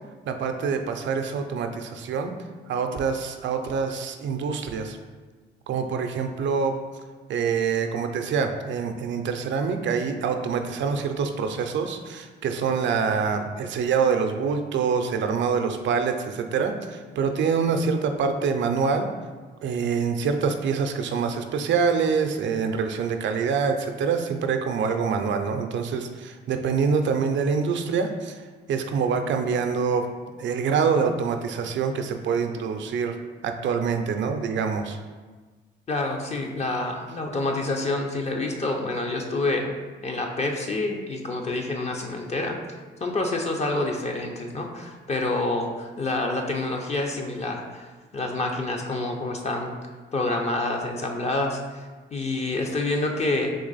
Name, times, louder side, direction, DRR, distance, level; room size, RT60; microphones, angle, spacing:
voice 1, 0.3-2.3 2.7-5.0 5.7-6.7 7.3-19.1 19.6-28.4 28.7-30.1 30.4-33.1 33.4-35.0, right 5 dB, 70° right, 6 dB, 0.5 m, -25 dB
voice 2, 35.9-39.7 40.0-47.8 48.1-49.7 50.1-53.5, left 2 dB, 35° left, 2 dB, 0.6 m, -28 dB
3.7 x 2.9 x 4.0 m, 1.4 s
cardioid pair, 90°, 20 cm